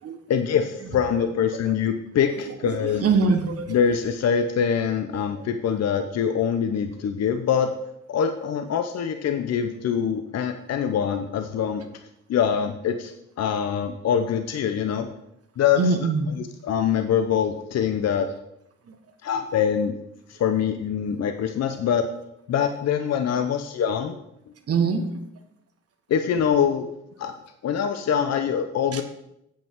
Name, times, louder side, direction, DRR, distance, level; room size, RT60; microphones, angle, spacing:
voice 1, 0.3-3.0 3.7-7.7 8.1-11.8 12.3-15.1 15.6-15.8 16.6-18.3 19.2-20.0 20.3-22.1 22.5-24.2 26.1-26.9 27.2-27.3 27.6-29.0, left 8 dB, 60° left, 7 dB, 0.8 m, -24 dB
voice 2, 2.3-3.8 5.3-5.4 15.8-16.3 18.9-19.0 23.4-23.5 24.7-25.2 26.3-26.4 28.9-29.0, right 4 dB, 50° right, 7 dB, 1.3 m, -24 dB
9.0 x 7.9 x 3.6 m, 0.80 s
cardioid pair, 90°, 30 cm